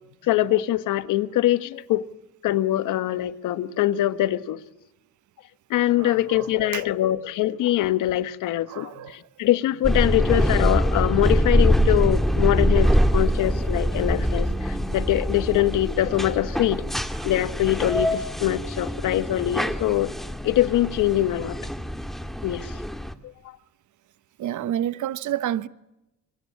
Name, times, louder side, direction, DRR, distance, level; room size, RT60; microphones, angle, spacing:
voice 1, 0.2-2.0 2.4-4.6 5.7-16.8 17.2-20.1 20.4-21.6 22.4-22.7, left 14 dB, 85° left, 1.3 m, -23 dB
voice 2, 6.0-6.8 8.7-9.2 10.3-10.5 12.8-13.1 24.4-25.7, right 11 dB, 75° right, 1.2 m, -30 dB
sound 1, 9.8-23.1, equal, ahead, 2.1 m, -24 dB
27.5 x 23.5 x 8.6 m
cardioid pair, 90°, 30 cm